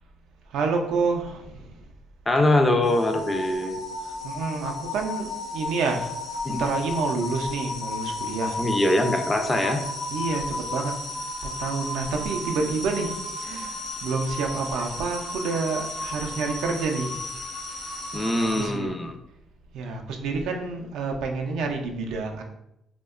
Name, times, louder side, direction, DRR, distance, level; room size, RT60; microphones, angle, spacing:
voice 1, 0.5-1.7 2.4-2.5 4.0-6.1 6.5-8.6 10.1-10.9 11.6-17.2 18.3-18.9 19.7-22.4, right 4 dB, 80° right, 3 dB, 0.3 m, -28 dB
voice 2, 2.3-3.8 6.4-6.6 8.6-9.9 18.1-19.2, left 1 dB, 20° left, 5 dB, 0.3 m, -23 dB
sound 1, 2.8-18.7, left 2 dB, 85° left, 0.7 m, -33 dB
2.7 x 2.1 x 2.3 m, 0.82 s
cardioid pair, 85°, 0 cm